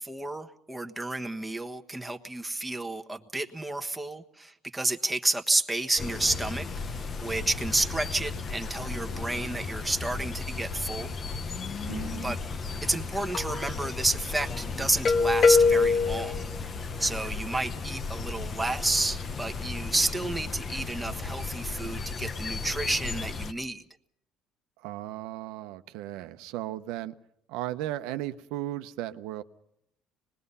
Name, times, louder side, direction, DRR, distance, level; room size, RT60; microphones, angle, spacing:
voice 1, 0.0-11.1 12.1-12.4 12.8-23.8, right 2 dB, 10° right, 1.3 m, -31 dB
sound 1, 6.0-23.5, left 4 dB, 35° left, 0.9 m, -30 dB
voice 2, 11.9-12.3 24.8-27.1 27.5-29.4, right 14 dB, 85° right, 0.9 m, -36 dB
25.5 x 21.0 x 5.6 m
cardioid pair, 115°, 0 cm